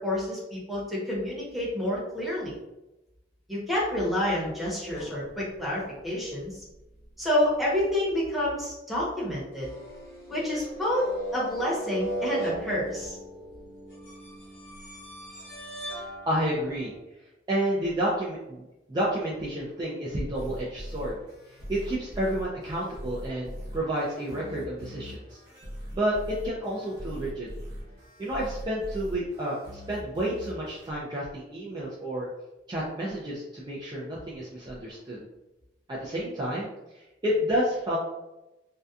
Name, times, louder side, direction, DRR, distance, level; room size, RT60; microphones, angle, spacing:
voice 1, 0.0-2.6 3.5-6.6 7.2-9.7 10.3-13.2, left 1 dB, ahead, -7 dB, 0.8 m, -29 dB
sound 1, 4.9-6.3 6.7-7.0 8.1-8.2 9.5-17.0, right 1 dB, 65° left, 1.0 m, -38 dB
voice 2, 16.3-16.9 17.5-21.2 21.5-25.4 25.9-27.5 28.2-32.3 32.7-35.3 35.9-36.7 36.9-38.0, right 1 dB, 25° right, -6 dB, 0.4 m, -30 dB
sound 2, 20.3-30.9, equal, 60° right, 0.9 m, -41 dB
2.6 x 2.2 x 2.3 m, 0.98 s
head